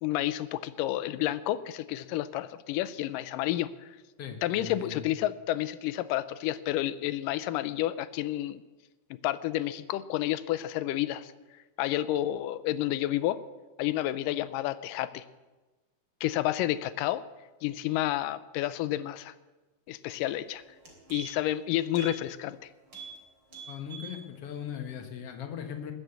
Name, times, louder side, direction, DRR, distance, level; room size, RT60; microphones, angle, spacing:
voice 1, 0.0-4.0 4.4-8.6 9.1-11.3 11.8-13.4 13.8-15.2 16.2-17.2 17.6-19.3 19.9-20.6 21.1-22.7, left 14 dB, 85° left, 15 dB, 2.3 m, -30 dB
voice 2, 4.2-5.0 23.7-25.9, left 8 dB, 55° left, 5 dB, 2.0 m, -39 dB
sound 1, 20.2-20.4 20.7-21.5 21.9-22.2 22.5-22.6 22.9-23.2 23.5-24.2 24.6-24.7, right 7 dB, 35° right, 3.7 m, -44 dB
20.0 x 7.2 x 7.9 m, 1.2 s
omnidirectional pair, 3.8 m